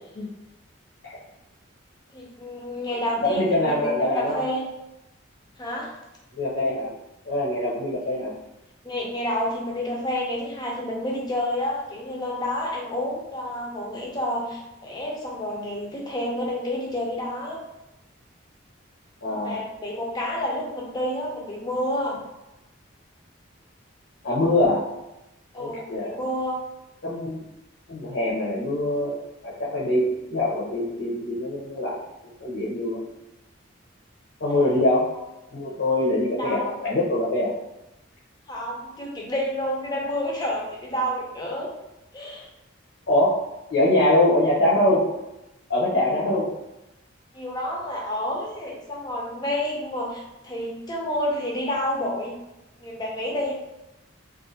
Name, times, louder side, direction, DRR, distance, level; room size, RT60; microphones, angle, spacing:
voice 1, 2.1-4.7 5.6-5.9 8.8-17.6 19.3-22.2 25.5-26.6 34.5-34.8 36.4-36.8 38.5-41.7 42.1-42.5 47.3-52.4 52.8-53.5, left 1 dB, 20° left, -2 dB, 0.5 m, -29 dB
voice 2, 3.2-4.4 6.3-6.9 7.3-8.3 19.2-19.6 24.2-24.8 25.5-26.2 27.0-27.4 27.9-29.2 29.4-32.0 32.2-33.0 34.4-35.1 35.5-37.5 43.1-43.4 43.7-45.1 45.7-46.5, left 1 dB, 70° left, -7 dB, 0.7 m, -23 dB
2.4 x 2.4 x 2.7 m, 0.93 s
head